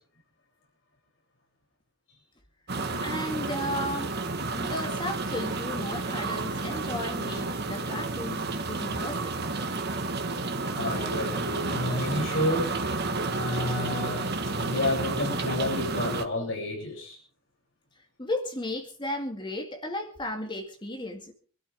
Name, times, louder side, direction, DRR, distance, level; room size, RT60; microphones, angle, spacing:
sound 1, 2.7-16.3, right 3 dB, 50° right, 1.5 m, -31 dB
voice 1, 2.9-4.2 4.5-9.4 18.2-21.3, left 1 dB, 20° left, 2.2 m, -34 dB
voice 2, 10.7-12.8 13.3-14.3 14.5-17.2, left 1 dB, 65° left, 7.5 m, -30 dB
26.0 x 12.5 x 3.7 m
head